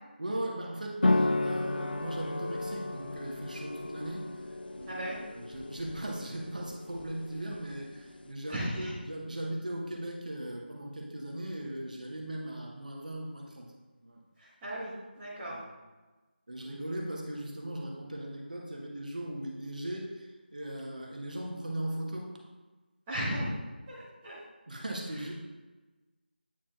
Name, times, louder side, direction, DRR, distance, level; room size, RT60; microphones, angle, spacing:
voice 1, 0.2-4.5 4.7-13.7 14.0-14.2 15.5-15.6 16.5-22.3 24.7-25.3, right 1 dB, 50° right, -1 dB, 1.2 m, -38 dB
sound 1, 1.0-8.3, left 2 dB, 60° left, 0.4 m, -33 dB
voice 2, 4.9-5.2 8.5-8.9 14.6-15.5 23.1-23.5 23.9-24.4, equal, 10° right, -12 dB, 0.8 m, -35 dB
8.6 x 4.8 x 2.4 m, 1.2 s
figure-of-eight pair, 165°, 6 cm